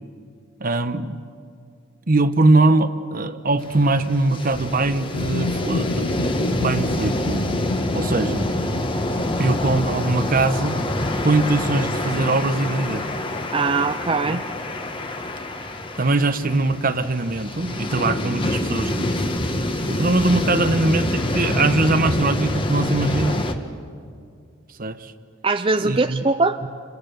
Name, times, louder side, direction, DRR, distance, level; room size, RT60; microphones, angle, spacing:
voice 1, 0.6-1.2 2.1-7.5 7.9-8.5 9.4-10.8 11.2-13.1 14.2-14.4 16.0-23.5 24.7-25.1 25.8-26.3 26.6-26.7, right 2 dB, 45° right, 1.1 m, -22 dB
sound 1, 3.6-23.5, left 1 dB, 25° left, 1.6 m, -26 dB
sound 2, 5.1-10.8, left 3 dB, 85° left, 0.6 m, -31 dB
voice 2, 13.5-14.4 25.4-26.6, right 3 dB, 25° right, 0.6 m, -21 dB
29.5 x 26.0 x 7.0 m
head